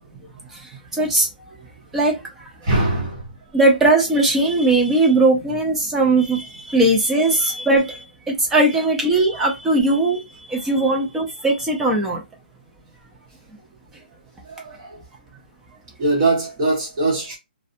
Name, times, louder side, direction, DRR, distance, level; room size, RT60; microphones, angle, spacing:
voice 1, 0.9-1.3 1.9-2.2 3.5-10.2 10.5-12.2, right 2 dB, 5° right, 0.4 m, -19 dB
voice 2, 2.6-3.3 9.3-9.4 9.9-10.0 14.4-15.0 16.0-17.4, right 2 dB, 25° right, 1.1 m, -22 dB
2.6 x 2.1 x 2.5 m
hypercardioid pair, 170°, 5 cm